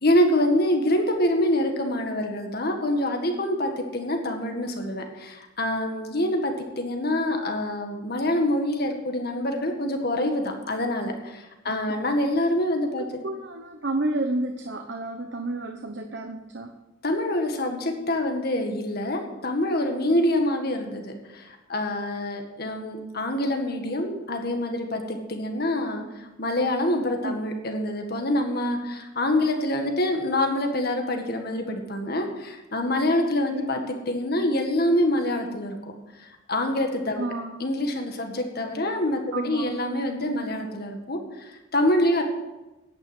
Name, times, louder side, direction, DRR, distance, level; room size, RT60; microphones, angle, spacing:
voice 1, 0.0-13.1 17.0-33.8 34.1-35.9 36.2-37.3 37.6-42.2, left 1 dB, 55° left, 4 dB, 1.8 m, -26 dB
voice 2, 11.7-12.0 12.8-16.7 27.0-27.4 33.5-33.7 37.2-37.7 39.3-39.8, right 2 dB, 65° right, 4 dB, 1.0 m, -31 dB
10.5 x 9.4 x 7.9 m, 1.0 s
head